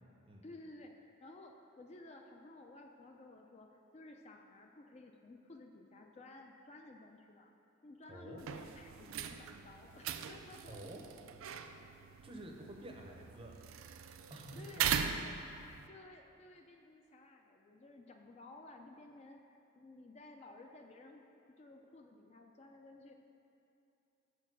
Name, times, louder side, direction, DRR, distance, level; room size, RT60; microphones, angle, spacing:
voice 1, 0.4-7.5 7.8-10.8 11.5-12.1 14.5-15.6 15.9-19.4 19.8-23.1, left 2 dB, 30° left, 3 dB, 0.4 m, -55 dB
voice 2, 8.1-8.4 10.7-11.0 12.2-13.6 14.3-14.9, right 1 dB, 25° right, 1 dB, 0.6 m, -49 dB
sound 1, 8.4-15.9, right 8 dB, 80° right, 0.4 m, -40 dB
6.4 x 4.5 x 6.0 m, 2.7 s
head